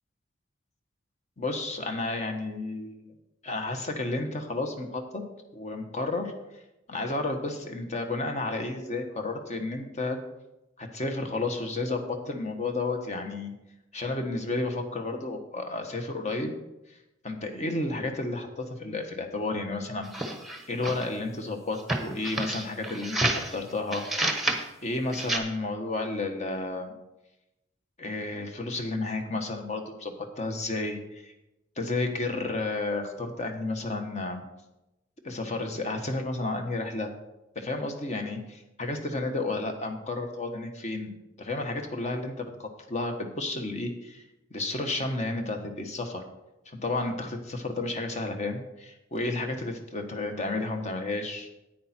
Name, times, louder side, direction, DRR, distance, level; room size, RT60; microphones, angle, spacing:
voice 1, 1.4-3.1 3.4-5.2 5.5-6.6 6.9-10.2 10.8-13.5 13.9-16.5 16.9-17.0 17.2-20.1 20.7-24.1 24.8-26.9 28.0-31.3 31.8-34.4 35.2-37.1 37.5-41.1 41.4-44.2 44.5-46.2 46.6-51.5, left 2 dB, 35° left, 5 dB, 1.3 m, -32 dB
sound 1, 20.0-21.1 21.8-23.5 23.9-24.6 25.1-25.4, right 2 dB, ahead, 1.1 m, -29 dB
10.0 x 9.0 x 4.4 m, 0.94 s
head